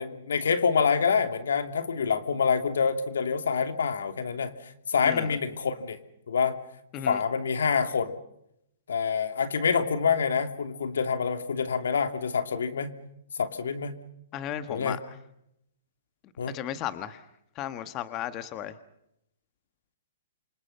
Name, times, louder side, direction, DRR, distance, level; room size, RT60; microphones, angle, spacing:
voice 1, 0.0-4.5 4.9-6.0 6.3-6.6 7.0-8.1 8.9-12.9 13.3-13.9 14.7-15.0 16.4-16.5, left 6 dB, 85° left, 8 dB, 2.9 m, -26 dB
voice 2, 5.0-5.4 6.9-7.2 14.3-15.0 16.5-17.2 17.5-18.7, left 11 dB, 30° left, 11 dB, 1.4 m, -35 dB
28.0 x 26.0 x 5.7 m, 0.78 s
hypercardioid pair, 145°, 0 cm